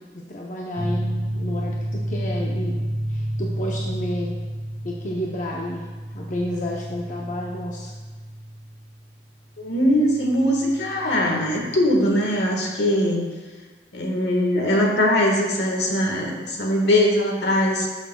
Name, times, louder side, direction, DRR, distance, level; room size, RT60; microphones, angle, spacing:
voice 1, 0.1-2.8 3.1-4.3 4.8-5.9 6.1-7.9, equal, 45° left, -2 dB, 0.7 m, -30 dB
sound 1, 0.8-12.0, right 1 dB, 55° right, 1.3 m, -31 dB
voice 2, 9.6-13.2 13.9-17.9, left 1 dB, 70° left, 0 dB, 1.4 m, -21 dB
12.0 x 6.6 x 2.3 m, 1.4 s
head